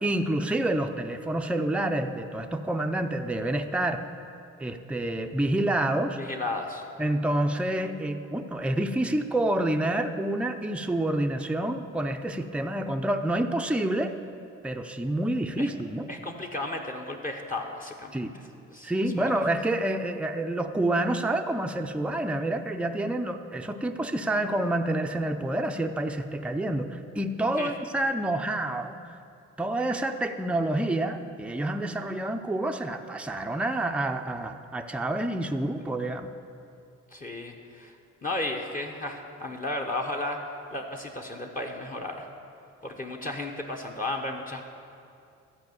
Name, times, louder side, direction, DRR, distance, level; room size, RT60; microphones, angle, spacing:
voice 1, 0.0-4.0 4.6-6.2 7.0-14.1 14.6-16.1 18.1-18.3 18.8-29.2 29.6-36.3, right 1 dB, 5° right, 5 dB, 0.5 m, -28 dB
voice 2, 6.2-6.8 15.6-15.7 16.1-18.2 18.7-19.3 27.6-27.7 37.1-37.9 38.2-40.4 40.7-42.3 42.8-44.6, left 2 dB, 25° left, 1 dB, 1.0 m, -34 dB
13.5 x 4.8 x 7.9 m, 2.5 s
cardioid pair, 90°, 30 cm